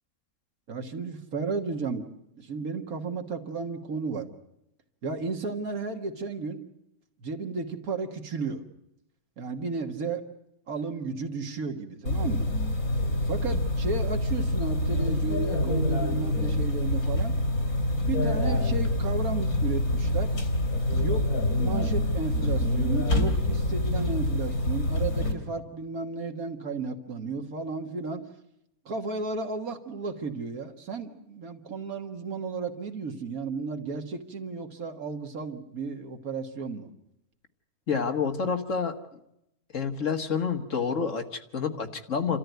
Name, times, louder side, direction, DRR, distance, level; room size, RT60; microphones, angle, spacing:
voice 1, 0.7-2.1 2.4-4.3 5.0-6.6 7.2-8.6 9.4-10.3 10.7-12.5 13.3-17.3 18.0-20.5 21.0-28.3 28.9-36.9, right 4 dB, 75° right, 5 dB, 2.0 m, -33 dB
sound 1, 12.1-25.3, left 1 dB, 85° left, 3.1 m, -26 dB
voice 2, 37.9-38.9 39.7-42.4, left 6 dB, 60° left, 6 dB, 1.8 m, -28 dB
28.5 x 13.5 x 9.2 m, 0.82 s
omnidirectional pair, 1.5 m